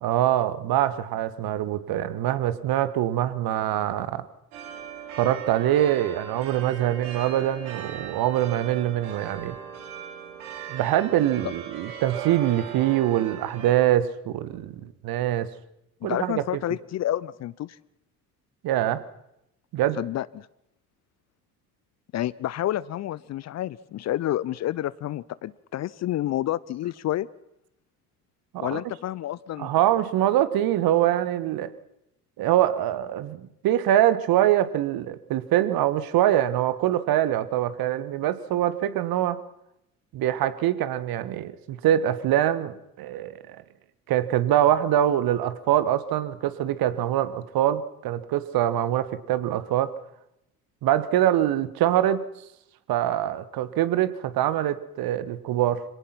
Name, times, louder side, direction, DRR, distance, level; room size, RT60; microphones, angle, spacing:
voice 1, 0.0-4.2 5.2-9.6 10.7-15.5 16.0-16.4 18.6-19.0 19.7-20.0 28.5-28.8 29.6-31.7 32.4-39.4 40.1-43.6 44.1-49.9 50.8-52.2 52.9-55.8, right 12 dB, 50° right, 14 dB, 1.6 m, -24 dB
sound 1, 4.5-13.7, right 8 dB, 70° right, 4.0 m, -39 dB
voice 2, 16.0-17.8 19.9-20.5 22.1-27.3 28.6-29.7, left 13 dB, 35° left, 21 dB, 0.7 m, -29 dB
26.0 x 18.0 x 5.9 m, 0.83 s
figure-of-eight pair, 55°, 45 cm